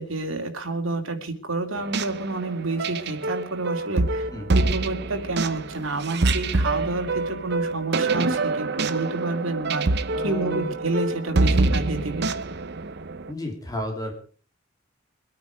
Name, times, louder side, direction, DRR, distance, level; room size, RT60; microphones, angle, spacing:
voice 1, 0.0-4.3 4.5-12.3, right 2 dB, 85° right, 4 dB, 2.7 m, -29 dB
sound 1, 1.8-13.3, right 3 dB, 55° right, 0.8 m, -26 dB
voice 2, 10.1-10.7 13.3-14.1, left 1 dB, 20° left, 2 dB, 3.2 m, -32 dB
23.5 x 9.5 x 5.1 m, 0.41 s
head